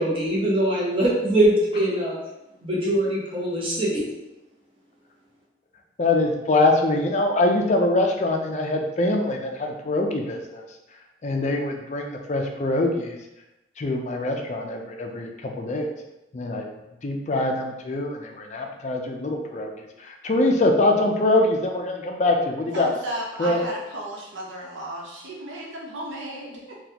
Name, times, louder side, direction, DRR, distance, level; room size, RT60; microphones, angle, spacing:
voice 1, 0.0-2.2 2.6-4.0, right 1 dB, 30° right, -6 dB, 0.9 m, -22 dB
voice 2, 6.0-10.6 11.2-13.2 13.8-15.9 16.3-16.7 17.0-19.7 20.0-22.9 23.4-23.6, left 2 dB, 40° left, 3 dB, 0.4 m, -23 dB
voice 3, 22.7-26.8, right 1 dB, 90° right, -3 dB, 0.9 m, -34 dB
4.0 x 2.3 x 2.8 m, 0.94 s
head